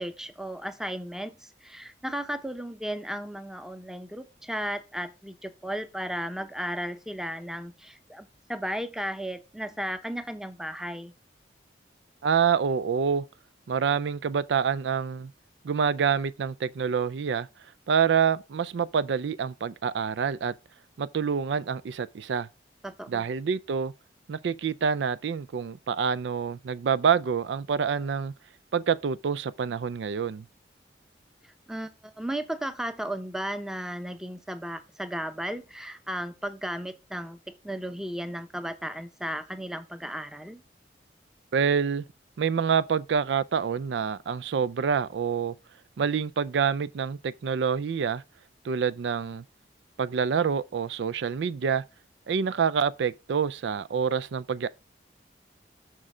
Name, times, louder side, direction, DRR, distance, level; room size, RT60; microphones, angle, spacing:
voice 1, 0.0-11.1 22.8-23.2 31.4-37.4 37.6-40.6, equal, 5° right, 0.7 m, -35 dB
voice 2, 12.2-13.3 13.7-15.3 15.6-17.5 17.9-20.5 21.0-22.5 23.1-23.9 24.3-28.3 28.7-30.5 41.5-42.0 42.4-45.5 46.0-48.2 48.6-49.4 50.0-51.8 52.3-54.7, right 6 dB, 80° right, 0.4 m, -27 dB
6.5 x 6.2 x 4.9 m
head